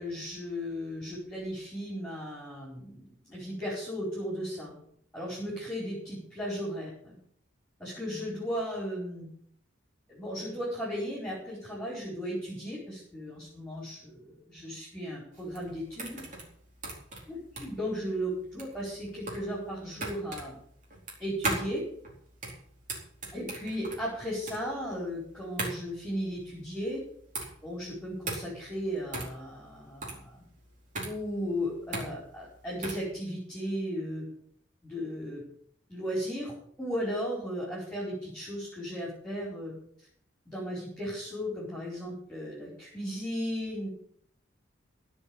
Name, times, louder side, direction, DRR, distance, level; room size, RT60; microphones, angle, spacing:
voice 1, 0.0-4.7 5.1-7.1 7.8-9.3 10.1-16.2 17.3-20.6 21.2-21.8 23.3-27.0 27.6-30.4 31.0-34.2 34.8-35.4 35.9-39.7 40.5-43.9, equal, 5° left, -6 dB, 4.8 m, -36 dB
sound 1, 15.3-33.1, right 2 dB, 40° right, 4.3 m, -38 dB
16.0 x 5.9 x 9.0 m, 0.63 s
head